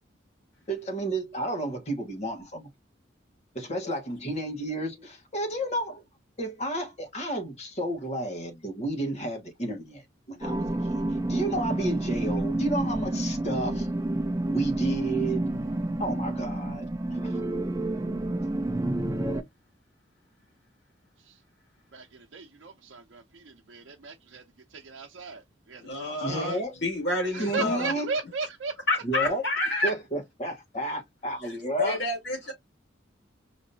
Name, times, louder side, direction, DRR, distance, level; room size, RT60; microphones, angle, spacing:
voice 1, 0.7-2.7 3.5-6.0 6.4-10.0 10.3-10.6 10.9-13.9 14.5-15.6 16.0-17.4 26.2-26.8 27.4-28.1 29.0-29.4 29.8-32.0, right 1 dB, 35° left, 1.3 m, -32 dB
sound 1, 10.4-19.4, right 1 dB, 15° right, 0.5 m, -29 dB
voice 2, 21.9-24.4 24.7-26.6 27.2-28.7, right 4 dB, 85° right, 0.6 m, -37 dB
voice 3, 25.8-26.6 26.8-27.9 28.9-29.9 31.8-32.5, left 2 dB, 65° left, 2.8 m, -28 dB
5.1 x 2.7 x 2.7 m
head